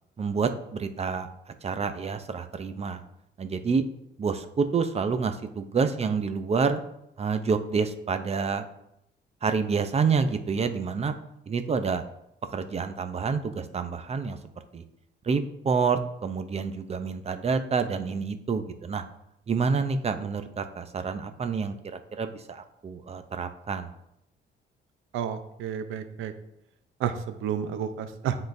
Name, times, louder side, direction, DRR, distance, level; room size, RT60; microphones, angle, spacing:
voice 1, 0.2-1.3 1.6-3.0 3.4-3.8 4.2-6.8 7.2-8.7 9.4-11.1 11.5-12.0 12.5-14.4 14.7-14.8 15.2-19.0 19.5-23.9, right 5 dB, 30° right, 9 dB, 0.6 m, -28 dB
voice 2, 25.1-26.3 27.0-28.4, right 8 dB, 90° right, 9 dB, 0.6 m, -31 dB
10.5 x 3.8 x 2.6 m, 0.81 s
cardioid pair, 90°, 20 cm